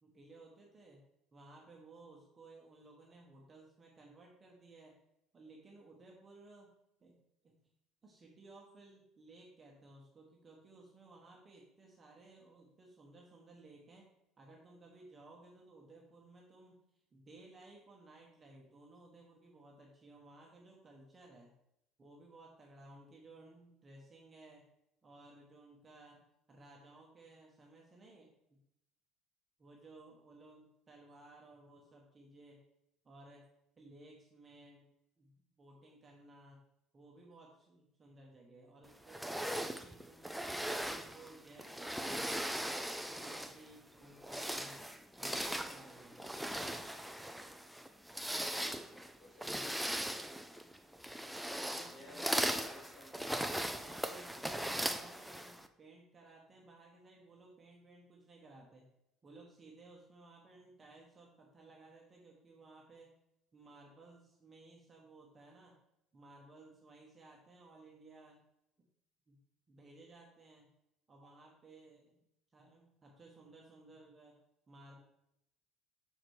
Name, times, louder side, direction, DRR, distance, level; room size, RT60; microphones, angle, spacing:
voice 1, 0.0-1.0 1.3-5.0 5.3-6.7 7.0-7.2 7.4-7.6 8.0-14.1 14.4-21.5 22.0-24.7 25.0-26.2 26.5-28.6 29.6-32.6 33.0-33.5 33.8-34.9 35.2-36.6 36.9-40.4 40.7-44.8 45.2-46.4 49.4-49.7 51.5-52.6 53.3-58.9 59.2-63.1 63.5-65.8 66.1-68.4 69.3-69.4 69.7-70.7 71.1-72.2 72.5-74.4 74.7-75.0, right 2 dB, 20° right, -1 dB, 1.1 m, -58 dB
sound 1, 39.1-43.7 44.1-55.7, equal, ahead, 0.4 m, -39 dB
voice 2, 48.1-50.2 51.7-53.3, left 2 dB, 25° left, -4 dB, 2.7 m, -55 dB
5.8 x 4.9 x 4.6 m, 0.81 s
cardioid pair, 155°, 0 cm